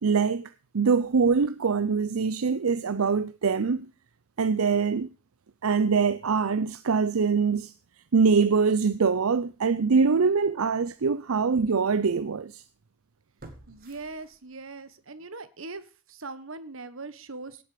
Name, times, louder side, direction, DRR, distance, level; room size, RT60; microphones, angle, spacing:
voice 1, 0.0-3.9 4.4-5.1 5.6-7.7 8.1-12.6, right 5 dB, 90° right, 0.6 m, -24 dB
sound 1, 10.1-10.2 10.8-10.9 13.4-14.8 15.2-15.3, right 2 dB, 45° right, 2.5 m, -50 dB
voice 2, 13.7-17.6, right 3 dB, 70° right, 1.5 m, -41 dB
17.5 x 7.9 x 5.1 m
head